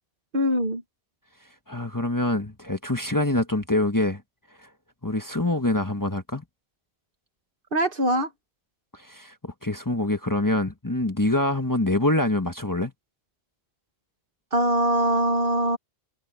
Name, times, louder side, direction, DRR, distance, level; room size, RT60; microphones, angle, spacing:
voice 1, 0.3-0.8 7.7-8.3 14.5-15.8, right 1 dB, 55° right, 1.9 m, -22 dB
voice 2, 1.7-4.2 4.6-4.7 5.0-6.4 8.9-12.9, left 1 dB, 20° left, 1.3 m, -25 dB
omnidirectional pair, 1.1 m